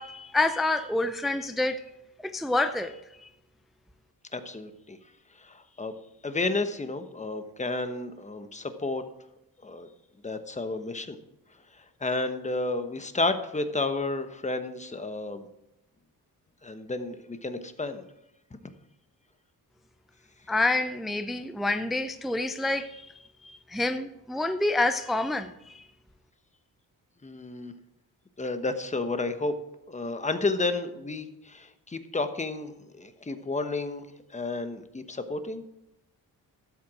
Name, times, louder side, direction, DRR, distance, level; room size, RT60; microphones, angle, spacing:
voice 1, 0.0-1.8 2.2-3.0 20.5-23.1 23.4-25.8, left 2 dB, ahead, 8 dB, 0.5 m, -28 dB
voice 2, 4.3-5.0 5.4-5.9 6.2-9.0 9.6-9.9 10.2-11.2 11.8-15.5 16.6-18.0 27.2-27.7 28.4-29.5 29.9-34.1 34.3-35.7, left 3 dB, 20° left, 9 dB, 1.1 m, -31 dB
12.5 x 7.9 x 4.8 m, 0.88 s
cardioid pair, 95°, 37 cm